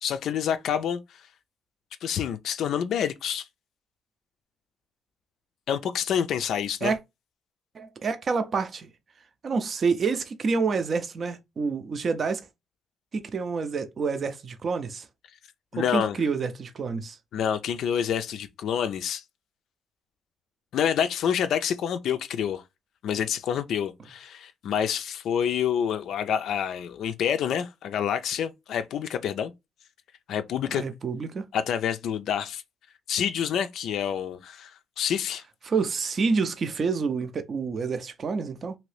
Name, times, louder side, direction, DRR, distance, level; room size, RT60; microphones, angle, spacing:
voice 1, 0.0-1.2 2.0-3.5 5.7-6.9 15.7-16.2 17.3-19.2 20.7-22.6 23.0-29.5 30.3-30.8 31.5-32.6 33.1-35.4, left 8 dB, 75° left, 0.3 m, -27 dB
voice 2, 7.7-8.9 9.4-12.5 13.1-15.1 15.7-17.2 30.7-31.4 35.6-38.7, right 5 dB, 45° right, 0.5 m, -28 dB
2.8 x 2.6 x 3.2 m
cardioid pair, 90°, 0 cm